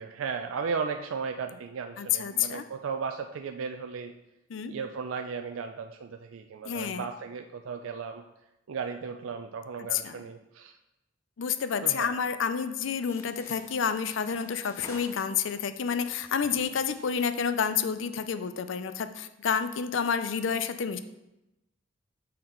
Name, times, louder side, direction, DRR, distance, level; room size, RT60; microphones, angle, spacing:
voice 1, 0.0-4.1 4.7-8.2 8.7-10.8 11.8-12.2, right 5 dB, 80° right, 6 dB, 0.4 m, -35 dB
voice 2, 2.0-2.6 4.5-4.7 6.6-7.0 9.9-10.2 11.4-21.0, left 7 dB, 65° left, 11 dB, 0.4 m, -29 dB
sound 1, 13.1-15.6 16.0-18.2, left 1 dB, 15° left, 0.8 m, -51 dB
7.4 x 4.3 x 3.8 m, 0.94 s
head